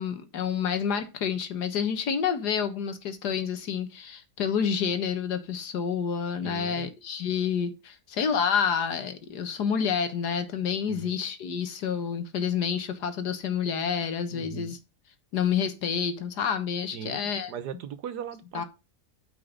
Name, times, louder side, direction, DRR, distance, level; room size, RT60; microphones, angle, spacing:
voice 1, 0.0-14.8 15.3-17.5 18.5-18.6, left 7 dB, 90° left, 1.8 m, -28 dB
voice 2, 6.4-6.9 10.8-11.1 14.3-14.7 16.9-18.6, right 8 dB, 90° right, 1.6 m, -39 dB
9.4 x 4.8 x 5.1 m
omnidirectional pair, 1.7 m